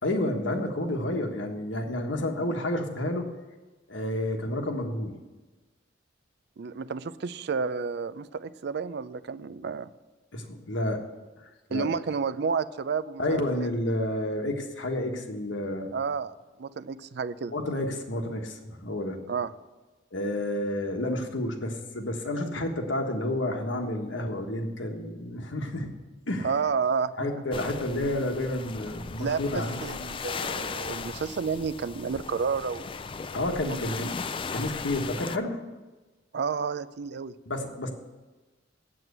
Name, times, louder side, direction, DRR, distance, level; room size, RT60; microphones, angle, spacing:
voice 1, 0.0-3.3 3.9-5.1 10.3-11.0 11.4-11.9 13.2-15.9 17.5-19.2 20.1-25.9 26.3-26.5 27.2-29.8 33.3-34.1 34.5-35.6 37.5-37.9, left 1 dB, 80° left, 4 dB, 1.4 m, -30 dB
voice 2, 6.6-9.9 11.7-13.7 15.9-16.3 16.6-17.5 19.3-19.5 26.4-27.3 29.2-33.0 33.7-34.1 36.3-37.3, right 5 dB, 60° right, 16 dB, 0.4 m, -31 dB
sound 1, 27.5-35.4, left 5 dB, 30° left, 0.4 m, -37 dB
7.7 x 7.7 x 8.0 m, 1.2 s
head